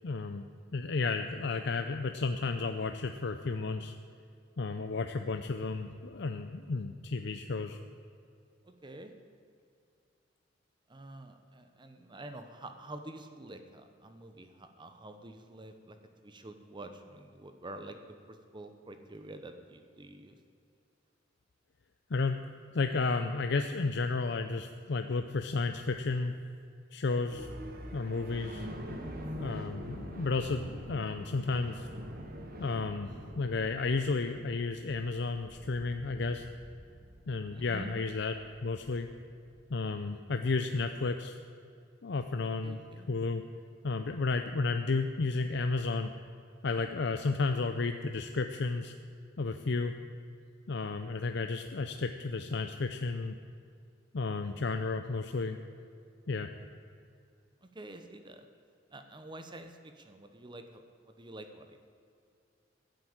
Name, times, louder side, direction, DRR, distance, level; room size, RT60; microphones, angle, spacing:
voice 1, 0.0-3.9 4.6-7.8 22.1-22.4 22.7-26.3 26.9-27.5 27.9-28.7 29.4-31.9 32.6-36.5 37.3-38.3 38.6-39.1 39.7-41.4 42.0-42.8 43.1-43.4 43.8-46.1 46.6-48.9 49.4-49.9 50.7-53.4 54.1-55.6 56.3-56.5, left 3 dB, 65° left, 7 dB, 0.6 m, -32 dB
voice 2, 8.6-9.1 10.9-18.0 18.3-20.4 37.5-37.9 42.6-43.1 57.6-58.5 58.9-61.8, right 1 dB, 25° right, 7 dB, 0.9 m, -48 dB
sound 1, 27.3-39.8, equal, 55° right, 1.8 m, -45 dB
15.0 x 7.9 x 8.8 m, 2.4 s
head